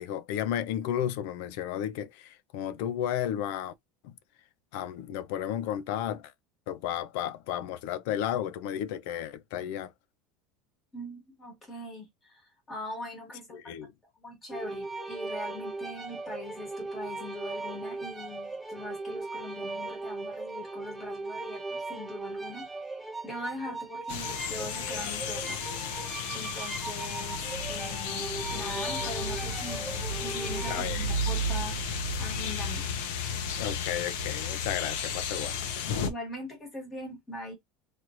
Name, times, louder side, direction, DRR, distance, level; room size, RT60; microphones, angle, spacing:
voice 1, 0.0-3.7 4.0-4.2 4.7-6.3 6.7-9.9 13.5-13.9 30.7-31.1 33.6-35.7, left 10 dB, 65° left, 0.4 m, -33 dB
voice 2, 10.9-13.8 14.2-25.8 26.3-29.9 30.2-31.8 32.2-32.9 36.0-37.5, left 1 dB, 15° left, 1.5 m, -41 dB
sound 1, 14.5-30.8, right 3 dB, 5° right, 0.6 m, -38 dB
sound 2, 24.1-36.1, left 3 dB, 85° left, 0.8 m, -33 dB
3.1 x 3.0 x 2.5 m
cardioid pair, 175°, 0 cm